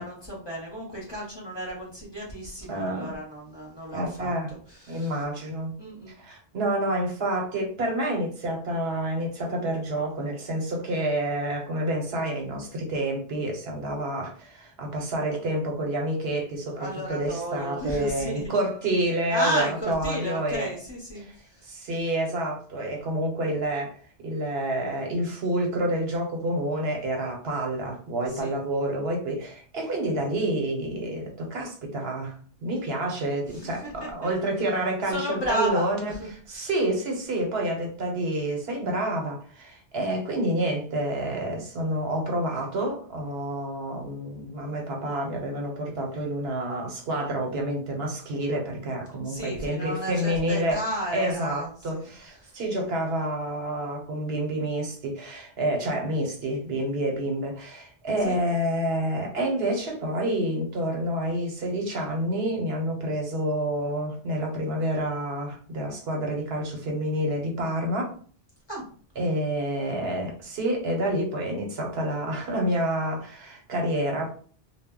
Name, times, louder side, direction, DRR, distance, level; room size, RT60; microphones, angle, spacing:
voice 1, 0.0-5.2 5.8-6.1 16.7-18.5 19.3-21.7 28.3-28.5 33.4-34.3 35.1-36.7 49.2-52.1 52.4-52.5 58.2-58.4 68.7-68.9, equal, 25° left, -4 dB, 0.8 m, -33 dB
voice 2, 2.7-3.1 3.9-4.5 4.9-5.8 6.2-20.7 21.2-21.3 21.6-36.1 36.5-50.8 51.1-68.1 69.2-74.3, right 1 dB, 75° right, 1 dB, 1.0 m, -28 dB
2.1 x 2.1 x 3.6 m, 0.43 s
omnidirectional pair, 1.1 m